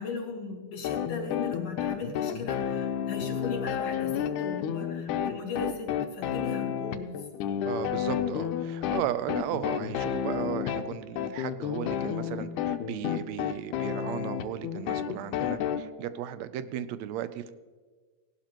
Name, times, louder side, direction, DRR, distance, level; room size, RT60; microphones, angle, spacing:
voice 1, 0.0-7.1, left 4 dB, 55° left, 1 dB, 3.0 m, -37 dB
sound 1, 0.8-15.8, left 9 dB, 85° left, 2.2 m, -31 dB
voice 2, 7.6-17.5, right 11 dB, 75° right, 12 dB, 1.7 m, -35 dB
17.5 x 12.0 x 3.0 m, 1.4 s
omnidirectional pair, 3.5 m